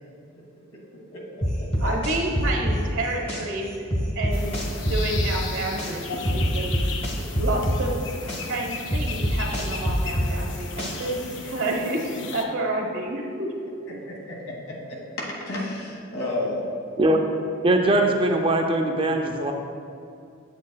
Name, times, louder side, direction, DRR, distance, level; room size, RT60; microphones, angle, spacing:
voice 1, 1.1-1.4 6.1-6.3 14.0-14.5 15.2-16.6, left 2 dB, 80° left, -3 dB, 1.6 m, -31 dB
sound 1, 1.4-3.4 3.9-5.9 6.2-8.4 8.9-11.2, equal, 30° left, 0.9 m, -24 dB
voice 2, 1.8-3.7 4.1-6.2 6.5-6.7 7.4-8.0 8.4-12.0 12.3-13.5 13.9-14.0, right 2 dB, 75° right, 0 dB, 1.1 m, -29 dB
sound 2, 4.3-12.4, left 5 dB, 55° left, 0.5 m, -37 dB
voice 3, 17.6-19.5, right 1 dB, 25° right, 3 dB, 0.4 m, -21 dB
8.3 x 8.0 x 2.2 m, 2.4 s
head